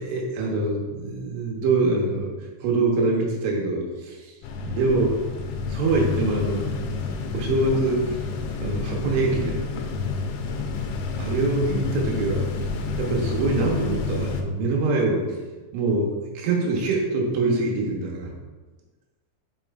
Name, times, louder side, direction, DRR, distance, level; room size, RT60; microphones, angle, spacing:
voice 1, 0.0-2.3 2.6-4.3 4.6-5.2 5.7-6.9 7.3-8.2 8.6-9.6 11.2-12.5 13.0-15.3 15.7-18.3, right 3 dB, 85° right, -1 dB, 3.6 m, -24 dB
sound 1, 4.4-14.4, left 4 dB, 80° left, 2.8 m, -29 dB
7.4 x 5.5 x 2.6 m, 1.3 s
omnidirectional pair, 5.4 m